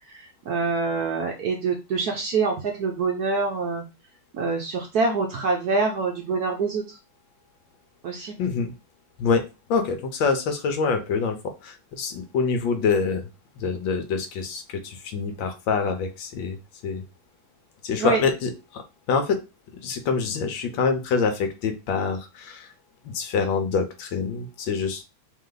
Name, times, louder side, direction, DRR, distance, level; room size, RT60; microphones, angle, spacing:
voice 1, 0.1-3.8 4.3-7.0 8.0-8.3 18.0-18.2, right 4 dB, 65° right, 2 dB, 1.0 m, -25 dB
voice 2, 8.4-8.7 9.2-13.3 13.6-16.6 16.8-17.0 17.8-19.4 19.8-22.7 23.0-25.0, left 5 dB, 75° left, 6 dB, 1.4 m, -26 dB
3.5 x 3.3 x 3.8 m, 0.27 s
omnidirectional pair, 2.2 m